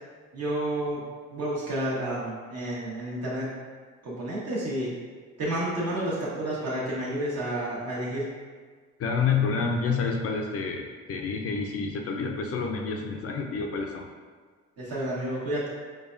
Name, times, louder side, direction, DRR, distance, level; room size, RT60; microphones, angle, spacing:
voice 1, 0.3-1.0 1.3-3.5 4.0-4.9 5.4-8.3 14.8-15.7, right 1 dB, 55° right, -7 dB, 1.4 m, -30 dB
voice 2, 9.0-14.1, left 5 dB, 50° left, 3 dB, 0.5 m, -28 dB
4.8 x 2.3 x 2.5 m, 1.5 s
cardioid pair, 90°, 30 cm